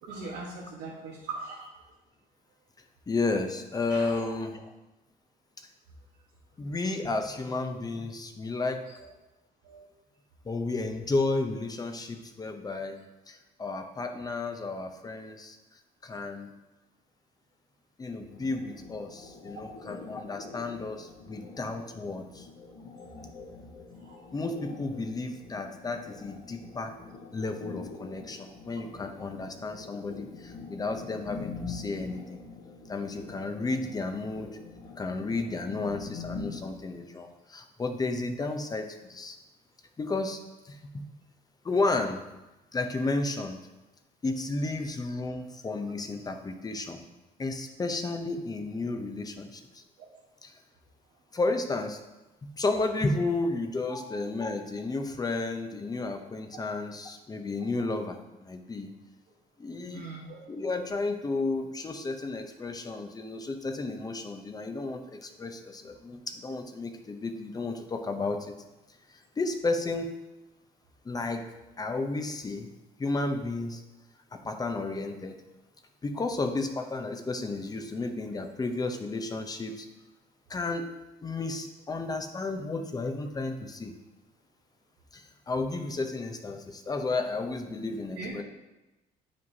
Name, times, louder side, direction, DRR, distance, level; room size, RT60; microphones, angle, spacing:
voice 1, 0.0-1.7 3.9-4.2 8.9-9.1 9.6-9.9 24.0-24.3 48.3-48.4 53.9-54.0 59.9-60.4 88.2-88.4, right 3 dB, 90° right, -5 dB, 1.3 m, -40 dB
voice 2, 3.1-4.6 6.6-8.9 10.4-13.0 13.3-15.6 16.0-16.5 18.0-22.5 24.3-27.0 27.3-32.4 32.9-34.6 35.0-39.4 40.0-40.4 40.6-41.0 41.6-42.2 42.7-43.6 44.2-47.0 47.4-49.8 50.4-50.5 51.3-52.0 52.6-58.9 59.6-60.0 60.5-68.5 69.1-70.1 71.0-71.5 71.8-72.7 73.0-73.8 74.3-75.4 76.0-79.9 80.5-80.9 81.2-84.0 85.1-88.4, left 3 dB, 20° left, 6 dB, 0.7 m, -32 dB
sound 1, 18.3-36.7, left 4 dB, 75° left, 1.7 m, -44 dB
9.2 x 5.1 x 2.8 m, 1.0 s
cardioid pair, 110°, 17 cm